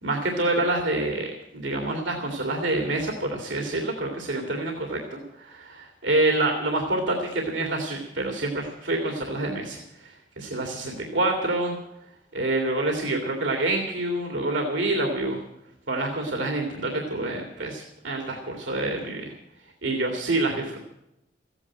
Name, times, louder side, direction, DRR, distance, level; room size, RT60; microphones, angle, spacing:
voice 1, 0.0-11.8 12.3-15.4 15.9-19.3 19.8-20.8, right 2 dB, 80° right, 2 dB, 2.4 m, -27 dB
15.0 x 9.8 x 8.9 m, 0.86 s
head